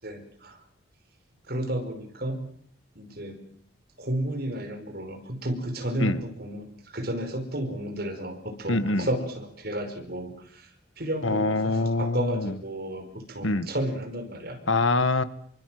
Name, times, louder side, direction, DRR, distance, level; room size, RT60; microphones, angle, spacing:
voice 1, 0.0-0.6 1.5-2.5 3.0-3.4 4.0-10.7 11.0-14.6, right 1 dB, 50° right, 6 dB, 5.3 m, -32 dB
voice 2, 8.7-9.1 11.2-12.6 13.4-13.7 14.7-15.2, left 2 dB, 80° left, 13 dB, 1.6 m, -24 dB
27.5 x 24.0 x 7.7 m, 0.63 s
head